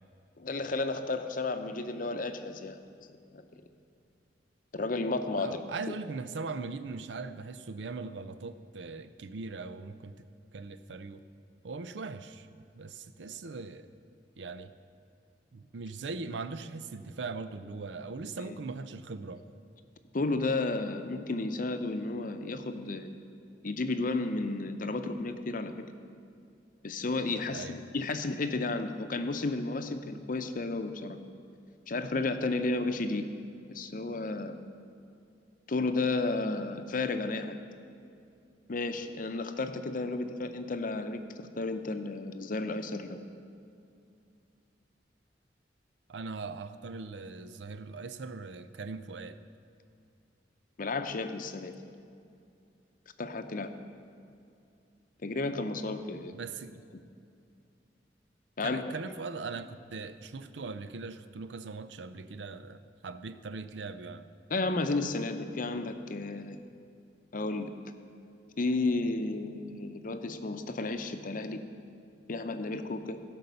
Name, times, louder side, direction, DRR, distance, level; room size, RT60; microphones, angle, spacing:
voice 1, 0.4-2.8 3.3-3.6 4.7-6.0 18.5-18.6 20.1-23.1 23.6-25.8 26.8-31.2 31.9-33.3 33.7-34.6 35.7-37.6 38.7-43.2 50.8-51.8 53.2-53.7 55.2-56.3 56.9-57.0 58.6-59.0 64.5-66.6 67.3-67.7 68.6-71.6 72.3-73.2, left 3 dB, 50° left, 8 dB, 0.7 m, -32 dB
voice 2, 5.4-10.2 10.5-11.2 11.6-12.5 12.7-13.9 14.4-14.7 15.5-19.4 27.5-27.8 46.1-49.4 56.3-56.8 58.6-64.3, right 4 dB, 85° right, 12 dB, 0.5 m, -40 dB
16.5 x 5.4 x 6.8 m, 2.5 s
head